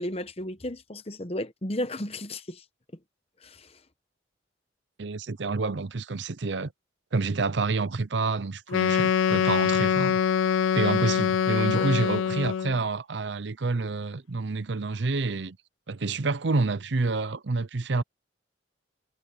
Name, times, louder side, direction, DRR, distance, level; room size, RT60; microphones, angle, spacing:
voice 1, 0.0-2.6 3.4-3.8 11.7-11.9, left 1 dB, 30° left, 1.0 m, -34 dB
voice 2, 5.0-6.7 7.1-10.2 10.7-15.6 15.9-18.0, right 3 dB, 65° right, 0.7 m, -28 dB
Wind instrument woodwind instrument, 8.7-12.8, left 8 dB, 80° left, 0.3 m, -24 dB
head